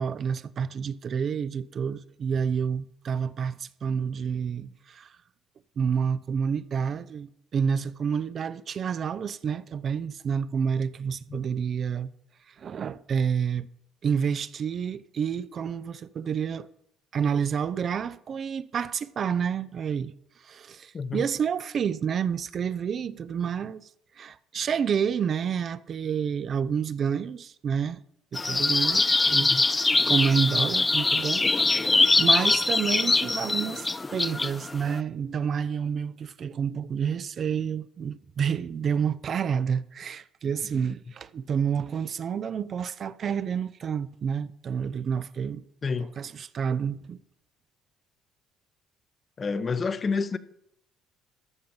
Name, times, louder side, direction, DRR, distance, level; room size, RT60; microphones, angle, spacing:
voice 1, 0.0-5.2 5.8-12.1 12.5-13.7 14.0-16.7 17.1-20.1 20.4-23.9 24.2-28.0 28.3-29.5 30.1-45.6 46.2-47.2, right 7 dB, 50° right, 0.5 m, -29 dB
sound 1, 28.4-35.0, left 3 dB, 20° left, 0.5 m, -23 dB
voice 2, 45.8-46.1 49.4-50.4, left 4 dB, 35° left, 0.9 m, -29 dB
13.5 x 5.1 x 7.2 m
supercardioid pair, 70°, 0 cm